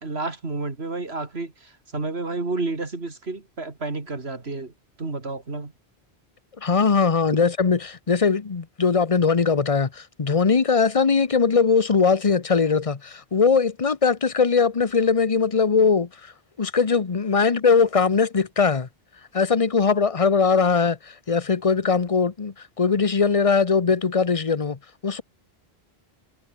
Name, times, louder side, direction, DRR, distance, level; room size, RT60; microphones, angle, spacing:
voice 1, 0.0-4.7 5.0-5.7, right 3 dB, 80° right, 3.2 m, -30 dB
voice 2, 6.6-16.3 16.6-18.9 19.3-25.2, left 5 dB, 35° left, 1.0 m, -20 dB
omnidirectional pair, 1.1 m